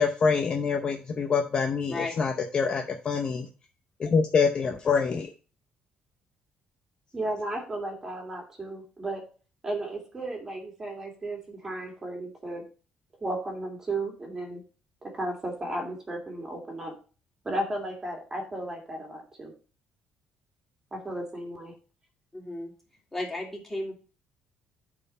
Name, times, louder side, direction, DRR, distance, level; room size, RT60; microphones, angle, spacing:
voice 1, 0.0-3.5 4.0-5.3, left 5 dB, 35° left, 5 dB, 0.7 m, -25 dB
voice 2, 7.1-9.2 9.6-12.6 13.2-14.6 15.0-16.9 17.4-19.5 20.9-21.7, right 1 dB, 20° right, 2 dB, 2.1 m, -34 dB
voice 3, 22.3-22.7 23.1-23.9, left 2 dB, 10° left, -2 dB, 3.0 m, -34 dB
8.8 x 4.4 x 5.4 m, 0.36 s
cardioid pair, 160°, 3 cm